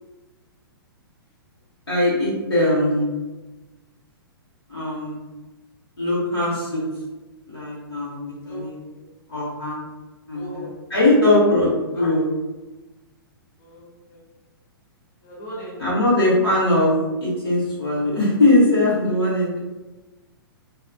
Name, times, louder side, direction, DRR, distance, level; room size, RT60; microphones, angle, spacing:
voice 1, 1.9-3.1 4.7-5.2 6.0-6.8 7.5-8.8 9.3-9.8 10.3-11.7 11.9-12.2 15.8-16.9 17.2-19.6, left 1 dB, 80° left, -9 dB, 0.9 m, -20 dB
voice 2, 8.4-9.1 10.3-10.7 11.3-12.1 13.6-14.2 15.2-16.1, equal, 50° left, -6 dB, 1.1 m, -37 dB
2.5 x 2.3 x 2.3 m, 1.2 s
figure-of-eight pair, 115°, 13 cm